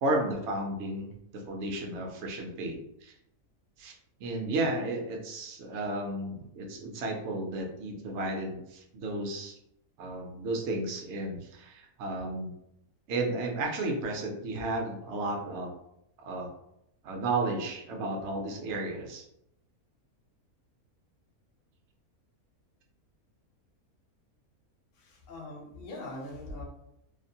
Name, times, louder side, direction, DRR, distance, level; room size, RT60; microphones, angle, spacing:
voice 1, 0.0-3.1 3.8-3.9 4.2-9.5 10.0-12.5 13.1-15.7 16.2-16.5 17.0-19.2, right 2 dB, 65° right, 1 dB, 0.8 m, -33 dB
voice 2, 25.0-26.6, left 1 dB, 55° left, -1 dB, 0.6 m, -41 dB
2.6 x 2.1 x 2.6 m, 0.79 s
omnidirectional pair, 1.5 m